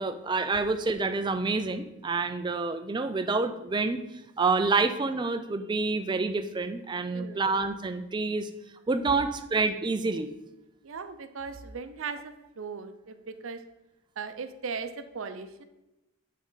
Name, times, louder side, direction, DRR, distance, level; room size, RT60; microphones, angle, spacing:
voice 1, 0.0-4.0 4.4-8.5 8.9-10.3, right 3 dB, 20° right, 9 dB, 0.4 m, -28 dB
voice 2, 7.1-7.5 9.3-9.5 10.8-13.6 14.2-15.6, right 5 dB, 75° right, 9 dB, 0.6 m, -38 dB
8.4 x 3.7 x 3.9 m, 0.96 s
head